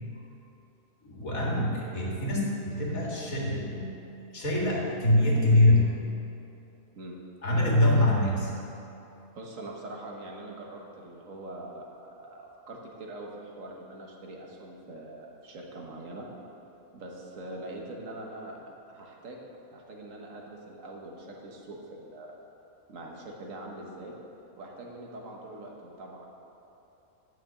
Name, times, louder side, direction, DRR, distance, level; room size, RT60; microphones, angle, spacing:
voice 1, 1.0-4.1 4.3-6.0 7.4-8.5, left 1 dB, 85° left, -4 dB, 2.3 m, -24 dB
voice 2, 9.4-16.3 16.9-19.4 19.7-22.4 22.9-24.2 24.6-26.3, right 1 dB, 70° right, -1 dB, 1.6 m, -43 dB
9.4 x 6.0 x 7.2 m, 2.9 s
omnidirectional pair, 1.4 m